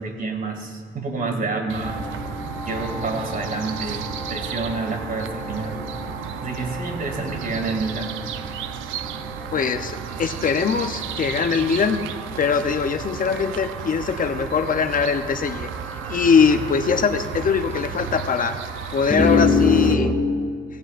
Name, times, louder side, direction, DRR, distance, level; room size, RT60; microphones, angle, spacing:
voice 1, 0.0-2.0 2.6-4.0 4.3-5.9 6.4-8.2, right 3 dB, 45° right, 3 dB, 2.4 m, -28 dB
sound 1, 1.7-19.9, right 9 dB, 85° right, 0.6 m, -33 dB
sound 2, 1.8-20.1, left 3 dB, 5° left, 2.2 m, -30 dB
voice 2, 9.5-12.0 12.4-15.7 16.1-18.6 18.9-20.1, left 6 dB, 45° left, 8 dB, 0.7 m, -21 dB
17.5 x 16.5 x 2.5 m, 2.1 s
cardioid pair, 90°, 20 cm